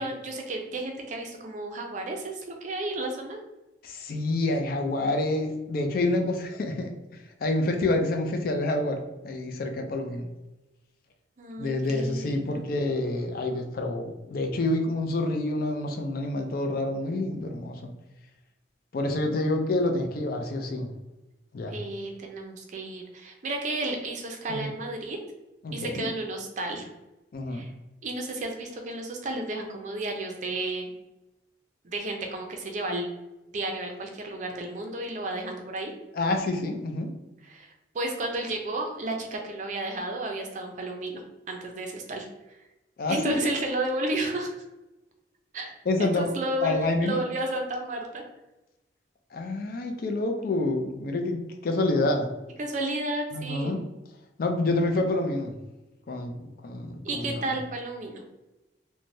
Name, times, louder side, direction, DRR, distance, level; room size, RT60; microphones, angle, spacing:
voice 1, 0.0-3.4 11.4-12.7 21.7-25.2 25.7-26.9 27.5-27.7 28.0-30.9 31.8-33.1 33.5-35.9 37.4-42.6 43.1-44.5 45.5-45.7 46.1-48.2 52.6-53.7 57.0-58.2, right 2 dB, 45° right, 3 dB, 0.4 m, -32 dB
voice 2, 3.8-6.9 7.4-10.3 11.6-17.9 18.9-20.9 21.5-21.8 24.5-24.7 25.6-26.1 27.3-27.6 36.1-37.1 43.0-43.4 45.9-46.3 46.6-47.2 49.3-52.3 53.3-53.8 54.4-55.6 56.1-57.5, left 2 dB, 50° left, 5 dB, 0.4 m, -28 dB
3.2 x 2.1 x 2.6 m, 1.0 s
head